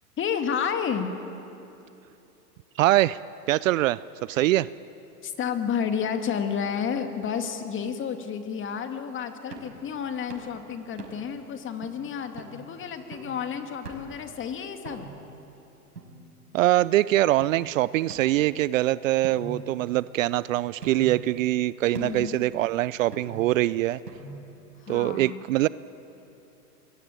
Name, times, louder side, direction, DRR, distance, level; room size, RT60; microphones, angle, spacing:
voice 1, 0.2-1.1 5.2-15.1 21.9-22.4 24.8-25.4, left 7 dB, 25° left, 7 dB, 2.2 m, -31 dB
voice 2, 2.8-3.2 3.5-4.0 4.3-4.7 16.5-24.0 24.9-25.7, right 15 dB, 55° right, 19 dB, 0.6 m, -23 dB
sound 1, 9.5-9.8 10.3-10.5 11.0-11.4 11.8-11.9 12.4-12.6 13.1-13.4 13.8-14.2 14.8-15.3 16.0-16.7 17.4-17.5 18.1-18.8 19.2-20.3 20.8-21.3 21.9-22.3 23.1-23.6 24.1-24.6, right 3 dB, 90° right, 5.7 m, -42 dB
25.5 x 22.0 x 9.0 m, 2.9 s
hypercardioid pair, 115°, 46 cm